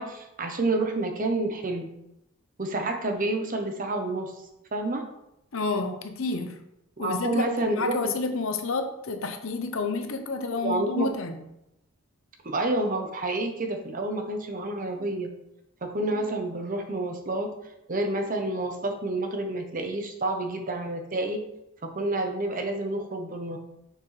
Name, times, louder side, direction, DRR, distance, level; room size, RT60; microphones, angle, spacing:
voice 1, 0.0-1.9 2.6-4.3 4.7-5.1 7.0-8.0 10.6-11.1 12.4-15.3 15.8-17.5 17.9-21.4 21.8-23.6, right 2 dB, 40° right, 4 dB, 0.9 m, -29 dB
voice 2, 5.5-6.6 7.0-11.4, left 3 dB, 65° left, 6 dB, 0.8 m, -30 dB
6.5 x 6.0 x 3.3 m, 0.85 s
head